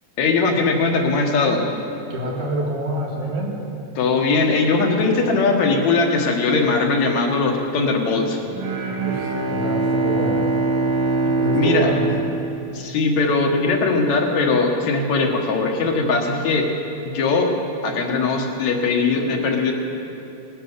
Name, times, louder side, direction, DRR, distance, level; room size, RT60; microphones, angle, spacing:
voice 1, 0.2-1.7 4.0-8.4 11.5-11.9 12.7-16.7 17.0-17.5 17.8-19.7, left 3 dB, 70° left, 1 dB, 2.7 m, -20 dB
voice 2, 2.1-3.6 9.0-10.5 11.4-12.1, right 1 dB, 90° right, -2 dB, 3.7 m, -26 dB
Bowed string instrument, 8.5-13.4, right 2 dB, 60° right, 2.5 m, -23 dB
19.0 x 10.0 x 6.6 m, 2.8 s
omnidirectional pair, 3.3 m